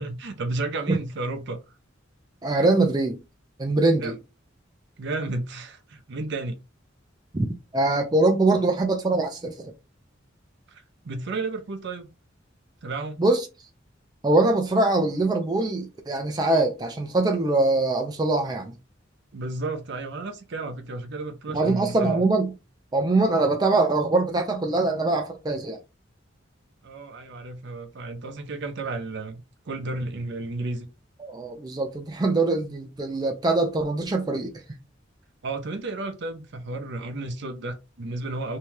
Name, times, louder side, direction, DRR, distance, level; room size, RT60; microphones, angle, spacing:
voice 1, 0.0-1.6 4.0-4.2 5.0-6.6 10.7-12.1 12.8-13.2 19.3-22.2 26.8-30.9 35.4-38.6, right 2 dB, 65° right, 0.6 m, -32 dB
voice 2, 2.4-3.2 3.6-4.1 7.3-7.5 7.7-9.7 13.2-13.5 14.2-18.8 21.5-22.5 22.9-25.8 31.2-34.5, right 2 dB, 20° right, 0.4 m, -23 dB
2.7 x 2.3 x 3.2 m
head